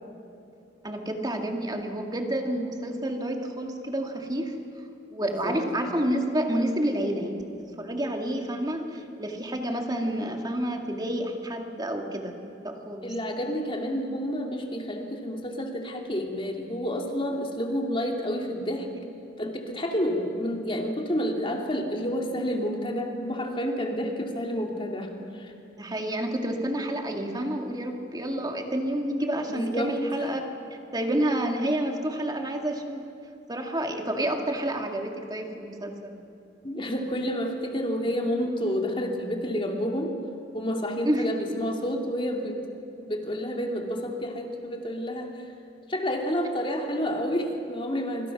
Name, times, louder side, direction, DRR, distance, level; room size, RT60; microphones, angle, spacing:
voice 1, 0.8-4.6 5.1-12.3 12.6-13.2 25.8-30.4 30.9-33.0 33.5-36.2 41.0-41.6, right 1 dB, 20° right, 3 dB, 2.2 m, -29 dB
voice 2, 5.2-5.6 13.0-18.9 19.4-25.5 29.5-30.4 36.6-40.1 40.5-42.6 43.0-45.3 45.9-48.3, equal, 30° left, 2 dB, 2.7 m, -29 dB
26.0 x 25.0 x 6.1 m, 2.6 s
head